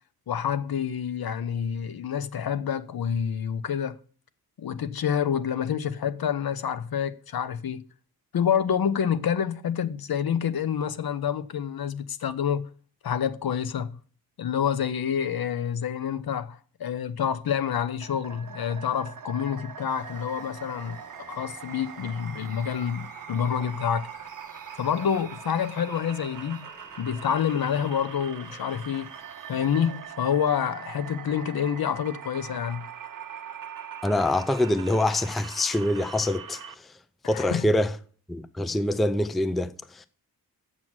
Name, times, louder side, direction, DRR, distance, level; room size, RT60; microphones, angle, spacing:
voice 1, 0.3-4.0 4.6-7.8 8.3-12.7 13.0-14.0 14.4-21.0 21.3-24.1 24.8-26.7 27.0-29.1 29.5-32.9 37.2-37.7, left 8 dB, 75° left, 0.7 m, -28 dB
sound 1, 18.0-36.7, right 8 dB, 60° right, 0.8 m, -42 dB
sound 2, 19.9-30.0, right 1 dB, 20° left, 2.0 m, -53 dB
voice 2, 34.0-36.9 37.3-37.9 38.3-40.1, left 1 dB, ahead, 0.3 m, -25 dB
7.6 x 6.2 x 7.4 m
wide cardioid pair, 155°, 37 cm